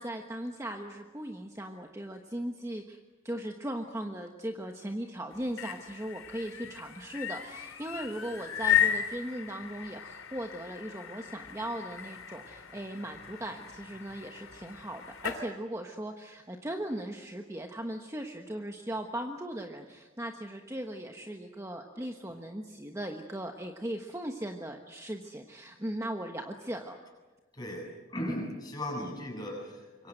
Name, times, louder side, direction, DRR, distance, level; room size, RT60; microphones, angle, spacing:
voice 1, 0.0-3.0 3.2-27.0, right 1 dB, 15° right, 3 dB, 1.3 m, -38 dB
sound 1, 5.3-15.4, left 9 dB, 85° left, 3.2 m, -35 dB
voice 2, 27.5-30.1, left 1 dB, 20° left, 0 dB, 7.7 m, -37 dB
26.5 x 23.0 x 7.9 m, 1.2 s
head